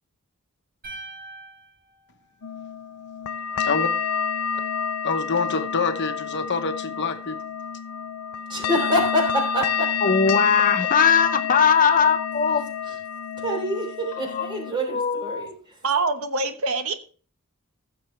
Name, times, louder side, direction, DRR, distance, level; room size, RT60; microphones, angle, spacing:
sound 1, 0.8-3.1, right 2 dB, 45° right, 5.4 m, -43 dB
sound 2, 2.4-14.7, left 7 dB, 90° left, 0.5 m, -29 dB
voice 1, 5.0-7.4, left 4 dB, 55° left, 1.0 m, -26 dB
voice 2, 8.5-10.2 12.8-13.0 13.4-15.8, equal, 20° right, 3.3 m, -26 dB
voice 3, 10.0-12.7 14.3-14.5 14.9-15.5, left 6 dB, 40° left, 0.6 m, -20 dB
voice 4, 15.8-16.9, right 3 dB, 75° right, 1.1 m, -24 dB
15.5 x 7.1 x 3.2 m
head